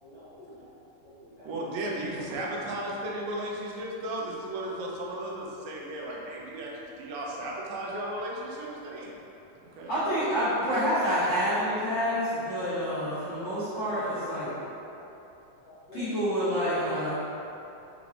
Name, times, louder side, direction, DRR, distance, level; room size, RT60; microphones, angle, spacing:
voice 1, 0.0-0.7 1.0-1.8 11.1-11.2 15.6-16.1, left 1 dB, 60° right, -15 dB, 0.7 m, -49 dB
voice 2, 1.5-9.1 9.6-10.4, right 1 dB, 90° right, -3 dB, 2.3 m, -35 dB
voice 3, 9.9-14.5 15.9-17.1, equal, 55° left, -16 dB, 1.3 m, -28 dB
6.0 x 2.5 x 3.3 m, 2.9 s
omnidirectional pair, 3.8 m